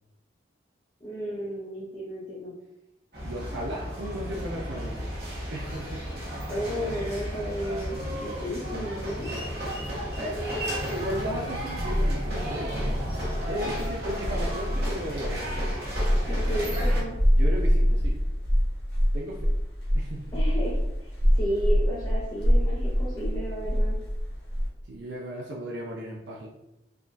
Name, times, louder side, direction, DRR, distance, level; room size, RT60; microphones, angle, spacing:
voice 1, 1.0-2.5 6.5-9.3 16.2-17.2 20.3-24.0, equal, 25° left, -7 dB, 0.6 m, -33 dB
sound 1, 3.1-17.0, equal, 60° right, 0.9 m, -34 dB
voice 2, 3.2-5.1 5.5-6.0 10.2-12.7 13.5-15.5 16.3-16.4 17.3-18.2 19.1-19.4 19.9-20.4 24.9-26.5, equal, 85° right, -2 dB, 0.5 m, -35 dB
sound 2, 11.3-24.7, equal, 65° left, 0.8 m, -25 dB
3.5 x 2.2 x 2.5 m, 0.91 s
head